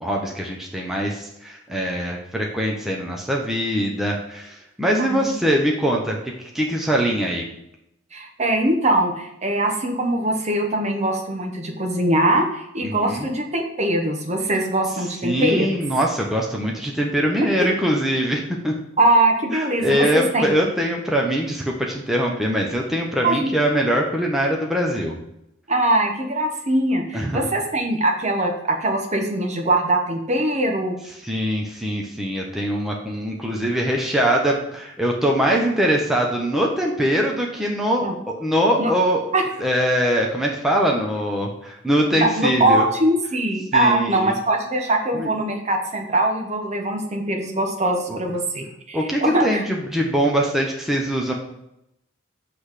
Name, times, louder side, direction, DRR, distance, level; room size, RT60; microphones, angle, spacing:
voice 1, 0.0-7.4 12.8-13.3 15.0-18.7 19.5-25.2 27.1-27.5 31.2-39.2 39.6-42.8 43.7-44.3 45.1-45.3 48.1-48.2 48.9-51.3, equal, ahead, -2 dB, 0.8 m, -22 dB
voice 2, 5.0-5.3 8.1-15.8 19.0-20.5 23.2-23.5 25.7-31.0 38.0-38.1 38.8-38.9 39.3-39.4 42.1-49.6, right 1 dB, 35° right, 3 dB, 1.0 m, -22 dB
7.9 x 3.3 x 6.3 m, 0.81 s
head